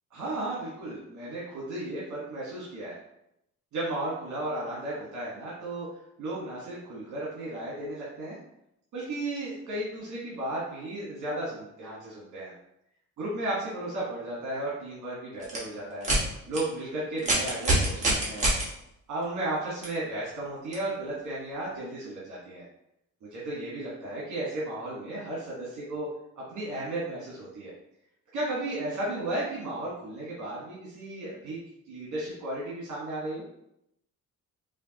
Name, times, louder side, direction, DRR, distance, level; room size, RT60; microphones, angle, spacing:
voice 1, 0.1-3.0 3.7-5.9 6.2-8.4 8.9-12.5 13.2-16.1 16.5-18.5 19.1-22.7 23.2-26.1 26.4-27.7 28.3-31.6 31.9-33.4, right 1 dB, 75° right, -7 dB, 1.4 m, -34 dB
sound 1, 15.4-15.6 16.0-16.2 16.5-16.6 17.2-18.6 19.8-19.9 20.7-20.8, right 1 dB, 25° right, 1.2 m, -24 dB
5.0 x 2.6 x 2.8 m, 0.80 s
wide cardioid pair, 175°, 29 cm